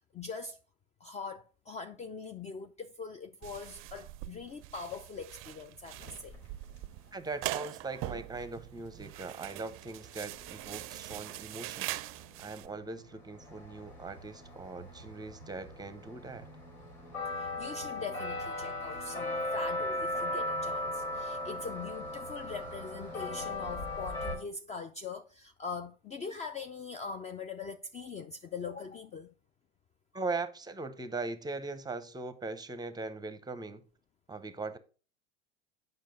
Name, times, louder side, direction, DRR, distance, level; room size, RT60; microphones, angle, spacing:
voice 1, 0.1-0.6 1.0-6.3 17.4-29.3, left 4 dB, 20° left, 0.4 m, -42 dB
sound 1, 3.4-12.7, right 17 dB, 45° right, 0.4 m, -42 dB
sound 2, 5.9-6.8 9.8-9.9 10.1-24.4, left 1 dB, 85° left, 3.0 m, -38 dB
voice 2, 7.1-12.0 12.4-16.5 30.1-33.8 34.3-34.8, right 3 dB, 15° right, 0.7 m, -40 dB
7.5 x 5.5 x 3.8 m
hypercardioid pair, 95°, 31 cm